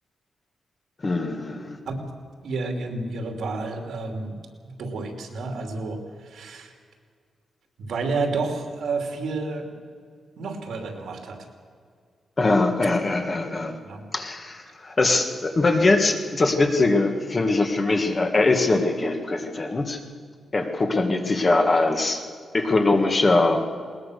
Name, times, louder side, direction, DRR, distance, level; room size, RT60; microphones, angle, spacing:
voice 1, 1.0-1.8 12.4-13.8 14.1-20.0 20.5-22.2 22.5-23.6, left 2 dB, 25° left, 5 dB, 1.7 m, -22 dB
voice 2, 2.4-4.4 4.6-6.7 7.8-9.7 10.4-11.5 13.8-14.0, right 3 dB, 75° right, 3 dB, 3.0 m, -30 dB
20.5 x 20.0 x 6.6 m, 2.1 s
wide cardioid pair, 160°, 0 cm